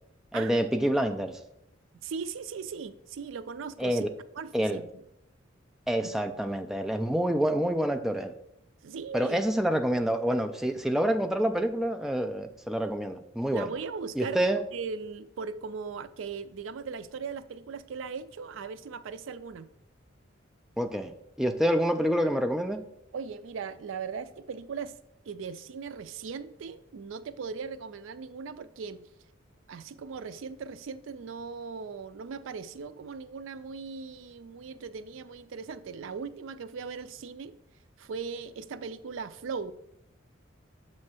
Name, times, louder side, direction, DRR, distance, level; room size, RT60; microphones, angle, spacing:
voice 1, 0.3-1.4 3.8-4.1 4.5-4.8 5.9-8.3 9.1-13.7 14.2-14.6 20.8-21.1 21.4-22.8, equal, ahead, 0.3 m, -27 dB
voice 2, 2.0-4.1 4.4-4.9 6.0-6.1 8.8-9.5 13.5-14.4 14.7-19.7 23.1-24.9 25.3-29.0 29.7-37.5 38.0-39.7, right 5 dB, 75° right, 0.4 m, -38 dB
7.3 x 3.2 x 6.0 m
head